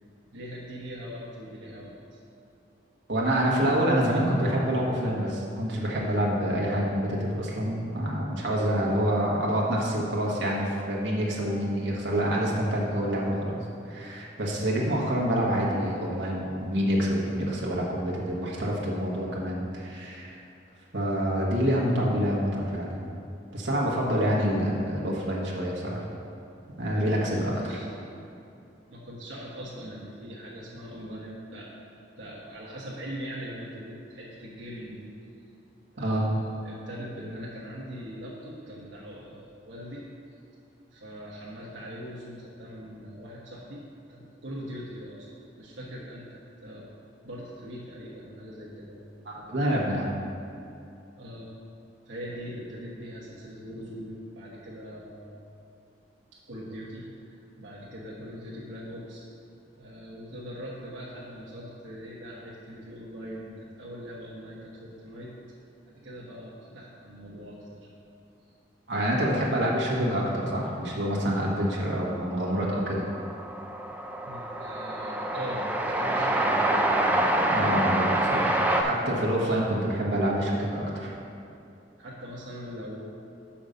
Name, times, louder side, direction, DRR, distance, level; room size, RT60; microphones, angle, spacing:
voice 1, 0.3-2.2 26.9-28.1 28.9-31.8 32.2-35.1 35.9-40.0 40.9-46.9 47.2-49.0 49.3-49.8 51.1-51.5 52.1-55.4 56.3-59.2 59.8-65.3 65.9-67.9 74.2-76.8 82.0-83.0, equal, 80° right, -7 dB, 1.2 m, -41 dB
voice 2, 3.1-13.6 13.8-20.4 20.9-23.0 23.5-26.0 26.8-27.5 36.0-36.3 49.2-50.1 68.9-73.1 77.5-78.5 78.8-81.1, equal, 65° right, -4 dB, 1.4 m, -27 dB
Train, 71.4-71.5 71.7-78.8, right 1 dB, 10° right, 0.4 m, -27 dB
5.9 x 5.1 x 6.8 m, 2.7 s
head